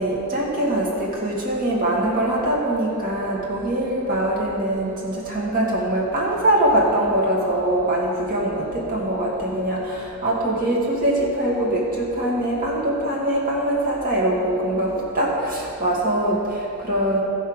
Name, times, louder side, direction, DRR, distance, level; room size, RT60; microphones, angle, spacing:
voice 1, 0.0-17.2, right 1 dB, 45° right, -4 dB, 1.9 m, -23 dB
14.0 x 5.6 x 6.3 m, 2.6 s
head